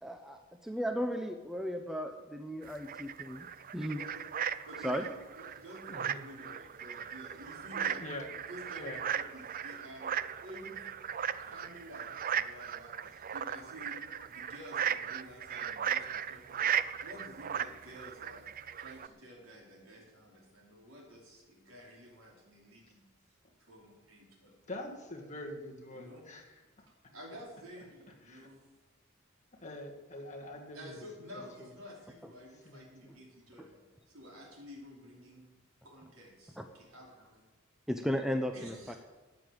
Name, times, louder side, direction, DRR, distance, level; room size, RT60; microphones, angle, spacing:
voice 1, 0.0-0.4 0.7-3.4 3.7-4.0 4.8-5.0 33.6-33.7 36.6-36.7 37.9-38.9, equal, ahead, 5 dB, 0.6 m, -35 dB
sound 1, 2.6-19.1, right 8 dB, 40° right, 0.5 m, -37 dB
voice 2, 3.9-4.3 4.6-8.1 8.3-10.9 11.4-14.0 14.3-18.4 18.8-23.0 23.6-24.5 25.9-26.3 26.8-28.6 30.7-35.5 35.8-37.4 38.5-39.0, equal, 70° right, -2 dB, 4.9 m, -51 dB
voice 3, 5.9-6.2 8.0-8.3 8.8-9.0 24.7-26.4 28.3-28.5 29.6-31.0 32.7-32.9, left 1 dB, 35° left, 0 dB, 2.1 m, -44 dB
13.5 x 9.0 x 7.9 m, 1.2 s
head